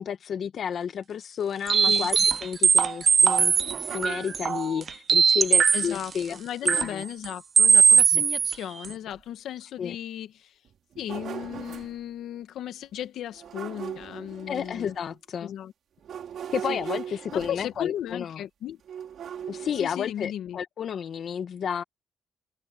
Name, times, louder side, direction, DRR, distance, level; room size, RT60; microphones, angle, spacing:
voice 1, 0.0-3.5 3.8-7.0 8.1-8.2 9.8-9.9 14.5-15.5 16.5-18.4 19.5-21.8, left 8 dB, 60° left, 1.1 m, -31 dB
sound 1, 1.7-6.0 6.7-6.9 7.2-7.3 7.6-8.5 8.8-8.9, right 6 dB, 45° right, 0.4 m, -20 dB
sound 2, 3.4-4.8 7.0-7.1 7.6-7.7 8.4-8.5 9.1-9.2 10.7-12.0 13.3-15.2 16.0-17.9 18.9-19.8, right 9 dB, 65° right, 2.9 m, -39 dB
voice 2, 5.7-10.5 11.0-14.9 15.4-15.7 16.7-16.8 17.3-18.8 19.8-20.6, left 11 dB, 75° left, 1.5 m, -36 dB
open air
cardioid pair, 90°, 0 cm